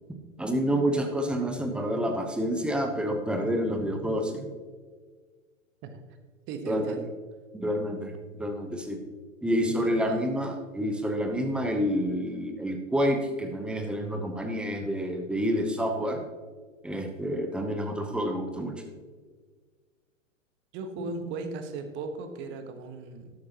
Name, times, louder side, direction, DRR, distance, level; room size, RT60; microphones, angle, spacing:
voice 1, 0.4-4.5 6.7-7.0 7.6-9.0 9.4-16.2 16.8-18.8 21.0-21.4, equal, ahead, 5 dB, 0.9 m, -28 dB
voice 2, 6.5-7.1 9.8-10.2 20.7-23.3, right 4 dB, 30° right, 7 dB, 1.3 m, -37 dB
12.5 x 12.0 x 2.9 m, 1.5 s
figure-of-eight pair, 110°, 40 cm